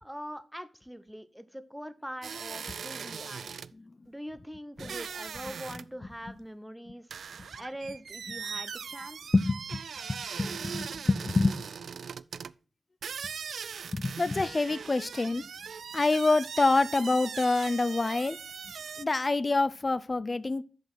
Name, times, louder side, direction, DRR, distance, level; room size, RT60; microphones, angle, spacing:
voice 1, 0.0-3.5 4.1-7.1 7.6-9.3, equal, 5° right, 0.9 m, -43 dB
sound 1, 2.2-3.7 4.8-5.9 6.1-6.2 7.1-12.5 13.0-19.0, right 6 dB, 80° right, 0.3 m, -40 dB
voice 2, 9.3-9.8 10.1-11.6 13.9-15.5 15.9-18.4 19.0-20.6, left 3 dB, 35° left, 0.4 m, -26 dB
7.4 x 5.3 x 6.0 m
wide cardioid pair, 85°, 0 cm